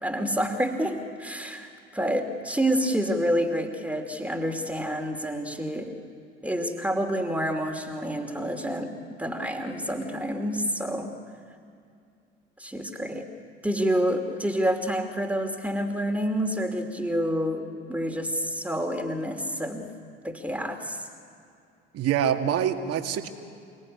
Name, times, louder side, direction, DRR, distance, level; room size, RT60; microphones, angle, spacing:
voice 1, 0.0-6.0 6.4-8.9 9.2-11.1 12.6-13.3 13.6-19.9 20.2-21.1, equal, 5° right, 4 dB, 2.8 m, -28 dB
voice 2, 21.9-23.3, right 9 dB, 55° right, 5 dB, 2.2 m, -25 dB
29.0 x 18.0 x 9.8 m, 2.4 s
hypercardioid pair, 65°, 30 cm